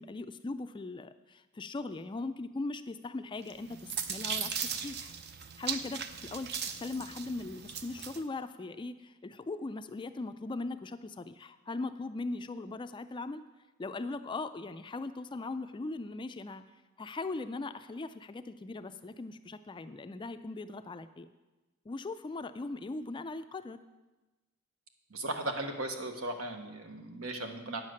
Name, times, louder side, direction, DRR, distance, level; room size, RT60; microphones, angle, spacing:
voice 1, 0.0-5.1 5.6-6.5 6.8-13.4 13.8-16.6 17.0-21.3 21.9-23.8, left 3 dB, 25° left, 11 dB, 0.3 m, -39 dB
sound 1, 3.5-8.2, right 7 dB, 50° right, 0.6 m, -38 dB
voice 2, 25.1-27.8, right 2 dB, 75° right, 5 dB, 1.2 m, -37 dB
9.2 x 7.4 x 6.4 m, 1.1 s
head